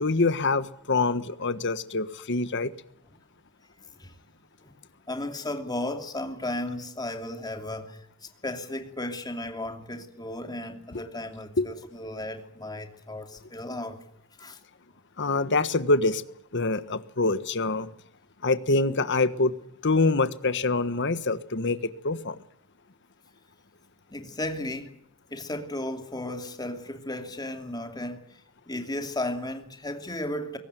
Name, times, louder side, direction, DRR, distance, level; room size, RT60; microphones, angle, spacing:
voice 1, 0.0-2.7 11.6-11.7 15.2-16.2 16.5-17.9 18.4-19.5 19.8-22.4, left 3 dB, 55° left, 1.4 m, -25 dB
voice 2, 5.1-14.0 14.4-14.6 24.1-25.0 25.3-28.4 28.7-30.6, left 1 dB, 20° left, 2.7 m, -35 dB
22.5 x 18.5 x 9.2 m
head